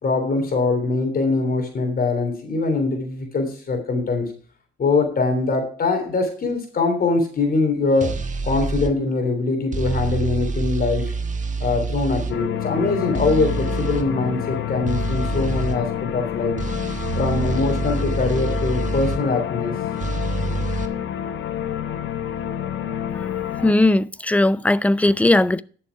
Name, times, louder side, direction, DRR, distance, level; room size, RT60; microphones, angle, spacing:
voice 1, 0.0-4.3 4.8-8.1 8.4-11.1 11.6-16.6 17.2-19.7, left 3 dB, 50° left, 3.3 m, -22 dB
sound 1, 8.0-8.9 9.7-12.3 13.1-14.1 14.9-15.8 16.6-19.2 20.0-20.9, right 4 dB, 40° right, 1.4 m, -26 dB
sound 2, 12.3-23.7, left 10 dB, 70° left, 1.1 m, -28 dB
voice 2, 23.6-25.6, left 2 dB, 5° left, 0.5 m, -18 dB
12.0 x 7.0 x 4.7 m
cardioid pair, 90°, 20 cm